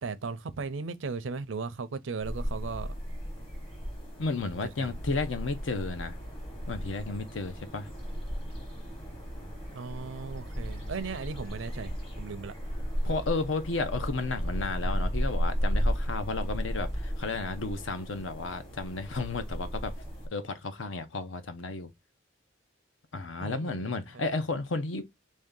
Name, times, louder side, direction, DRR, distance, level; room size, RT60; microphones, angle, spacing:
voice 1, 0.0-2.9 4.8-4.9 9.7-12.5 23.4-24.2, right 4 dB, 75° right, 0.5 m, -37 dB
sound 1, 2.2-20.3, equal, 25° left, 1.1 m, -34 dB
voice 2, 4.2-6.2 6.7-7.9 13.0-19.9 20.3-21.9 23.1-25.0, left 3 dB, 75° left, 0.7 m, -33 dB
3.2 x 2.7 x 3.6 m
head